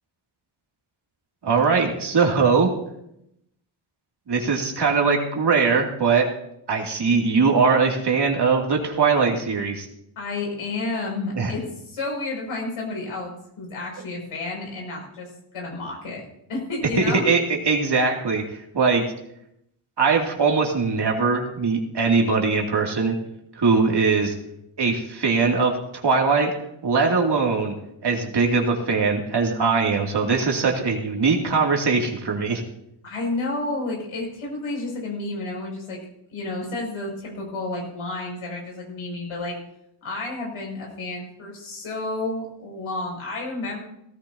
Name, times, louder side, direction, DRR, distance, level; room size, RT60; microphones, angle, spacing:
voice 1, 1.4-2.7 4.3-6.3 6.7-9.9 11.4-11.5 17.0-17.4 17.6-18.4 18.7-19.0 20.0-23.1 23.6-24.3 24.8-25.8 26.0-26.5 26.8-27.7 28.0-32.6, right 4 dB, 55° right, 0 dB, 2.8 m, -21 dB
voice 2, 10.1-16.2 16.5-17.2 33.0-36.0 36.3-39.6 40.0-43.8, left 2 dB, 80° left, -1 dB, 6.5 m, -31 dB
17.5 x 15.0 x 2.9 m, 0.78 s
cardioid pair, 70°, 50 cm